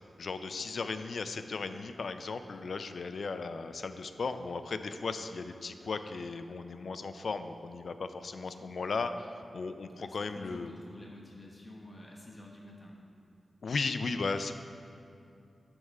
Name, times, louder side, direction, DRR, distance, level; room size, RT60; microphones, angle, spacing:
voice 1, 0.2-10.7 13.6-14.5, left 4 dB, 65° left, 9 dB, 0.4 m, -36 dB
voice 2, 8.3-8.8 9.9-13.1, left 1 dB, 20° left, -2 dB, 1.0 m, -50 dB
9.3 x 3.6 x 6.5 m, 2.5 s
wide cardioid pair, 120°, 0 cm